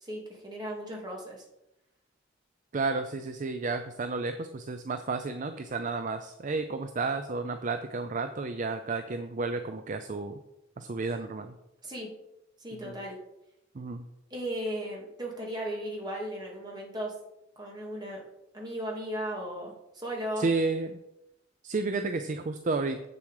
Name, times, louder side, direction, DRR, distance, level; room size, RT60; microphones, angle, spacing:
voice 1, 0.0-1.4 11.8-12.2 12.6-13.2 14.3-17.1 17.6-18.2 18.5-20.5, equal, 20° right, -2 dB, 2.1 m, -36 dB
voice 2, 2.7-10.4 10.8-11.5 12.8-12.9 13.7-14.0 20.4-21.0 21.6-23.1, right 3 dB, 40° right, 8 dB, 0.5 m, -32 dB
7.6 x 6.9 x 4.8 m, 0.88 s
head